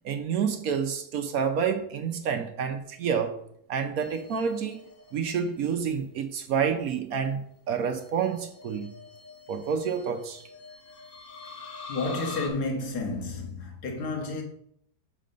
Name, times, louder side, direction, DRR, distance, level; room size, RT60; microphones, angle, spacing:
voice 1, 0.0-3.4 3.7-4.8 5.1-8.9 9.5-10.4, right 7 dB, 65° right, 1.0 m, -28 dB
sound 1, 4.0-5.6 7.9-12.5, left 4 dB, 45° left, 0.8 m, -44 dB
voice 2, 11.5-14.4, left 3 dB, 70° left, 1.8 m, -31 dB
6.4 x 4.2 x 5.1 m
omnidirectional pair, 1.8 m